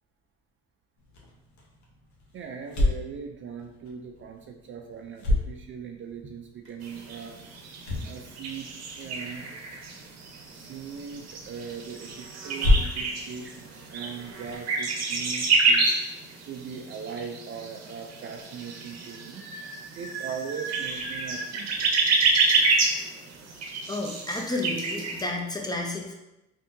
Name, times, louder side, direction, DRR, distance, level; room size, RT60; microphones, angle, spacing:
sound 1, 1.0-14.6, left 2 dB, 70° left, 1.0 m, -32 dB
voice 1, 2.3-7.4 8.0-8.7 8.9-9.5 10.5-19.7 19.9-21.9, right 6 dB, 45° right, 4 dB, 0.4 m, -40 dB
sound 2, 6.8-25.3, right 3 dB, 60° right, 0.8 m, -29 dB
voice 2, 23.9-26.1, left 2 dB, 15° left, 0 dB, 0.6 m, -31 dB
3.4 x 2.7 x 2.6 m, 0.92 s
supercardioid pair, 80°, 30 cm